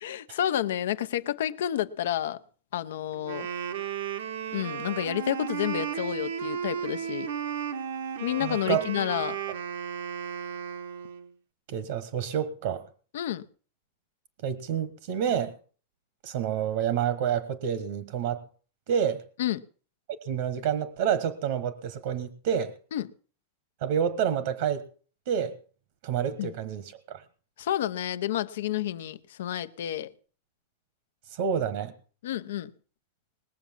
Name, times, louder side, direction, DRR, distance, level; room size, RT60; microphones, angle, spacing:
voice 1, 0.0-2.4 2.7-3.5 4.5-7.3 8.2-9.4 13.1-13.4 19.4-19.6 22.9-23.1 26.4-26.5 27.6-30.1 32.2-32.7, left 11 dB, 80° left, 0.8 m, -30 dB
Wind instrument woodwind instrument, 3.1-11.3, right 8 dB, 85° right, 1.4 m, -34 dB
voice 2, 8.4-8.8 11.7-12.8 14.4-15.5 16.2-18.4 18.9-19.2 20.3-22.7 23.8-24.9 25.3-25.6 26.0-27.2 31.3-31.9, right 8 dB, 65° right, 1.3 m, -28 dB
20.0 x 7.3 x 7.3 m
supercardioid pair, 145°, 0 cm